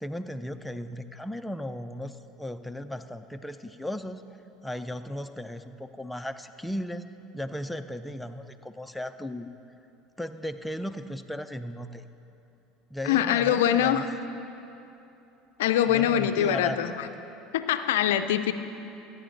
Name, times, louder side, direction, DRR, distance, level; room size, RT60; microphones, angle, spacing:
voice 1, 0.0-4.2 4.6-7.1 7.3-9.5 10.2-12.0 12.9-14.1 15.9-16.9, equal, 5° left, 8 dB, 0.4 m, -36 dB
voice 2, 13.0-14.0 15.6-17.1 17.5-18.5, left 10 dB, 80° left, 10 dB, 0.4 m, -23 dB
13.5 x 8.9 x 3.9 m, 2.9 s
hypercardioid pair, 80°, 0 cm